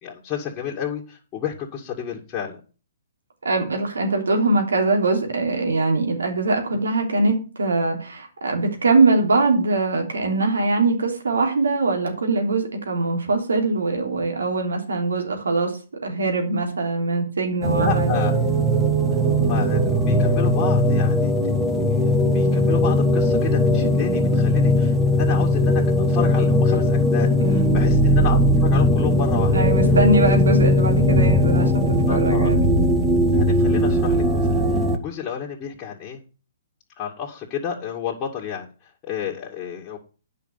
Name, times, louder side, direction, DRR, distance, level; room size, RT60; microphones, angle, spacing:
voice 1, 0.0-2.6 17.8-18.4 19.3-21.3 22.3-29.6 32.1-32.5 33.3-36.2 37.0-40.0, left 8 dB, 25° left, -3 dB, 2.3 m, -31 dB
voice 2, 3.4-15.7 16.0-18.2 27.4-27.8 29.5-32.7, right 3 dB, 85° right, 3 dB, 3.3 m, -22 dB
sound 1, 17.6-35.0, left 1 dB, 10° right, 1.4 m, -19 dB
9.8 x 5.8 x 7.0 m, 0.36 s
hypercardioid pair, 130°, 0 cm